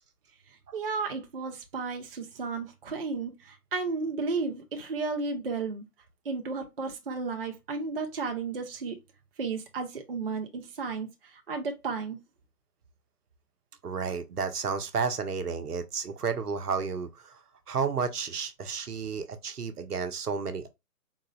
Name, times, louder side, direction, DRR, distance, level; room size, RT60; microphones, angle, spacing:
voice 1, 0.7-5.8 6.3-9.0 9.4-12.2, right 4 dB, 40° right, 0.5 m, -33 dB
voice 2, 13.8-17.4 17.7-20.7, right 5 dB, 75° right, 0.8 m, -32 dB
3.9 x 2.3 x 3.0 m
figure-of-eight pair, 140°, 46 cm